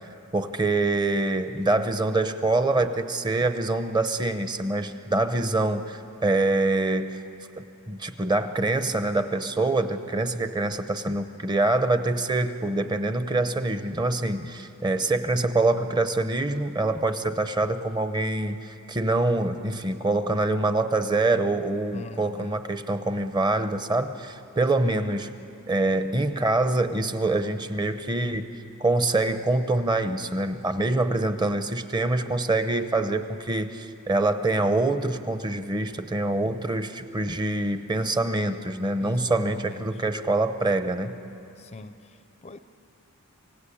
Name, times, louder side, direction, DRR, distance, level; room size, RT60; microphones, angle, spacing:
voice 1, 0.3-7.2 7.9-25.3 25.7-28.5 28.8-41.1, right 2 dB, 20° right, 10 dB, 0.8 m, -25 dB
voice 2, 21.9-22.6 24.8-25.2 39.0-40.0 41.6-42.6, left 3 dB, 30° left, 11 dB, 0.5 m, -43 dB
27.5 x 18.0 x 8.5 m, 2.7 s
head